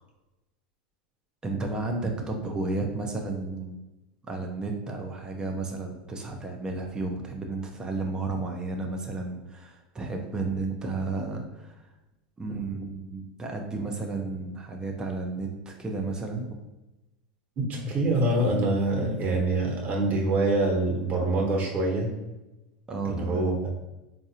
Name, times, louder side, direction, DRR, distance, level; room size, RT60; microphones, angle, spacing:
voice 1, 1.4-3.8 4.3-11.9 12.4-16.5 22.9-23.4, right 3 dB, 15° right, 1 dB, 0.5 m, -32 dB
voice 2, 17.6-22.1 23.0-23.7, right 2 dB, 40° right, 0 dB, 1.1 m, -25 dB
3.9 x 2.5 x 2.8 m, 1.0 s
hypercardioid pair, 105°, 5 cm